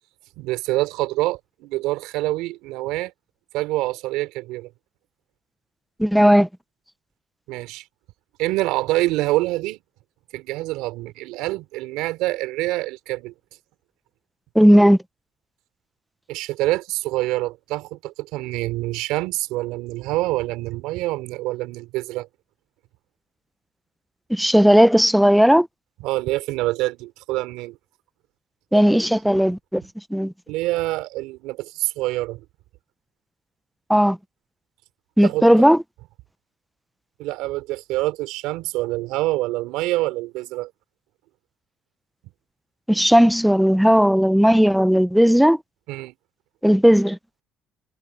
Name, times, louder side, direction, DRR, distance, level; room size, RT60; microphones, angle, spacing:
voice 1, 0.4-3.1 3.5-4.7 7.5-7.8 8.4-9.8 10.3-13.3 16.3-22.3 26.0-27.8 28.7-28.8 30.5-32.4 35.2-35.5 37.2-40.7 45.9-46.1, right 18 dB, 85° right, 3.6 m, -26 dB
voice 2, 6.0-6.5 14.6-15.0 24.3-25.7 28.7-29.8 30.1-30.3 33.9-34.2 35.2-35.8 42.9-45.6 46.6-47.2, equal, ahead, 0.8 m, -15 dB
supercardioid pair, 70°, 0 cm